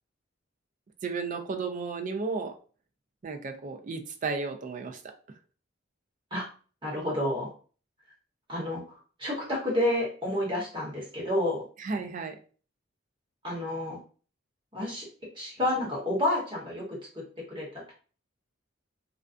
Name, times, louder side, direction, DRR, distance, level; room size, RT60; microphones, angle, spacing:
voice 1, 1.0-2.5 3.2-5.0 11.8-12.4, right 4 dB, 40° right, 5 dB, 0.4 m, -33 dB
voice 2, 6.8-7.5 8.5-8.8 9.2-11.6 13.4-14.0 14.7-15.1 15.3-16.8 17.5-17.9, left 1 dB, 25° right, -5 dB, 1.1 m, -29 dB
2.4 x 2.2 x 2.4 m, 0.39 s
head